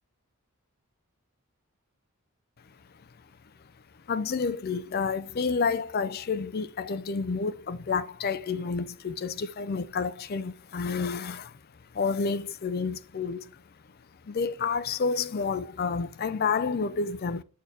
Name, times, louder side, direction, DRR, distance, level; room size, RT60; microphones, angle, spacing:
voice 1, 4.1-11.5 11.9-13.5 14.2-17.4, left 5 dB, 45° left, 0.4 m, -29 dB
8.2 x 4.3 x 3.3 m
head